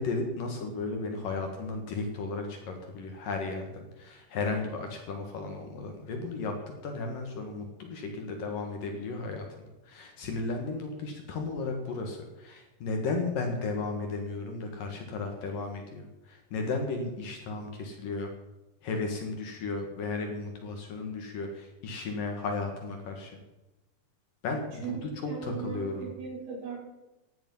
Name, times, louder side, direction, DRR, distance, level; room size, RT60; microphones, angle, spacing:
voice 1, 0.0-9.4 9.9-18.3 18.8-23.3 24.4-26.1, left 3 dB, 60° left, 3 dB, 2.7 m, -34 dB
voice 2, 25.3-26.8, right 7 dB, 80° right, -5 dB, 7.8 m, -38 dB
16.0 x 12.0 x 5.5 m, 1.0 s
omnidirectional pair, 5.4 m